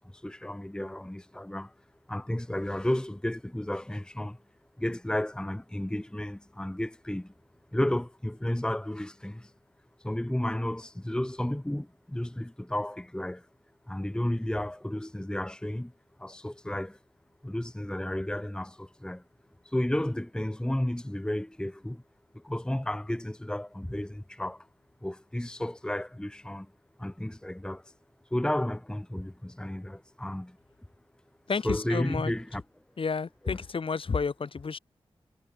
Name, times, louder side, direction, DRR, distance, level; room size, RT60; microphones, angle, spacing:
voice 1, 0.1-1.7 2.1-4.4 4.8-7.3 7.7-9.5 10.0-13.5 13.9-15.9 16.2-17.0 17.4-19.2 19.6-22.0 22.3-24.7 25.0-26.7 27.0-27.9 28.3-30.6 31.6-32.6 33.5-33.6, left 1 dB, 10° left, 1.2 m, -32 dB
voice 2, 31.5-32.3 33.0-34.8, left 5 dB, 60° left, 2.9 m, -30 dB
cardioid pair, 55°, 10 cm